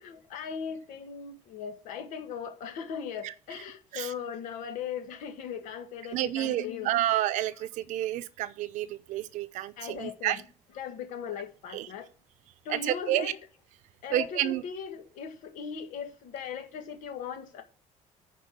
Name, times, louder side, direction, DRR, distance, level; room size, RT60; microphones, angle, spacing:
voice 1, 0.0-7.2 9.8-10.4 10.8-12.1 12.7-13.4 14.0-17.6, left 7 dB, 85° left, 1.8 m, -38 dB
voice 2, 6.1-10.4 11.7-11.9 12.7-13.3 14.1-14.6, right 13 dB, 70° right, 0.7 m, -30 dB
10.5 x 4.7 x 6.2 m
cardioid pair, 180°, 13 cm